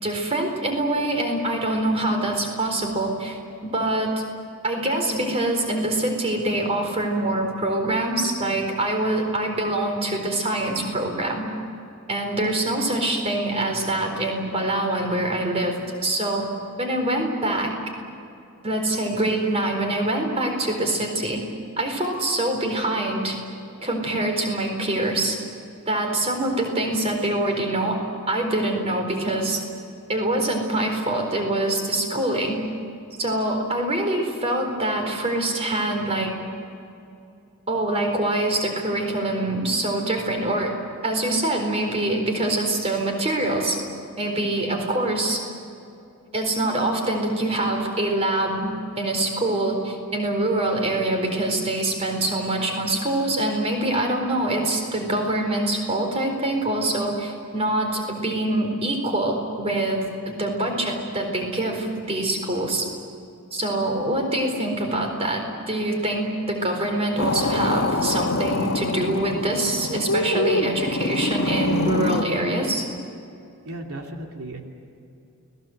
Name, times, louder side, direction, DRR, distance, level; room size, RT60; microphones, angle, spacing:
voice 1, 0.0-3.4 3.6-4.2 4.6-11.5 12.1-16.5 16.8-17.8 18.6-21.4 21.8-23.4 23.8-25.4 25.9-29.6 30.1-32.6 33.2-36.3 37.7-40.7 41.0-43.8 44.2-45.4 46.3-62.9 63.5-72.9, right 1 dB, 25° right, 3 dB, 4.3 m, -24 dB
sound 1, 67.2-72.3, left 2 dB, 70° left, 1.5 m, -25 dB
voice 2, 73.6-74.6, right 1 dB, 85° right, 1 dB, 2.9 m, -35 dB
30.0 x 20.0 x 8.0 m, 2.6 s
head